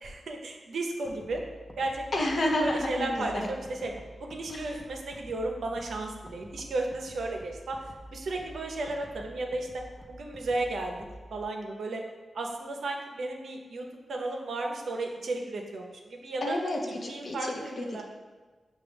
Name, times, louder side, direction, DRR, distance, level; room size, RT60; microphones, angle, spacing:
voice 1, 0.0-1.4 1.8-2.3 2.6-3.9 4.2-7.8 8.1-11.0 11.3-12.0 12.3-16.6 17.1-18.0, right 2 dB, 75° right, 2 dB, 0.5 m, -34 dB
sound 1, 1.0-11.4, equal, 15° left, 0.6 m, -49 dB
voice 2, 2.1-3.5 4.5-4.7 16.4-18.0, left 1 dB, 60° left, 1 dB, 0.7 m, -30 dB
5.8 x 2.3 x 3.3 m, 1.3 s
supercardioid pair, 40°, 0 cm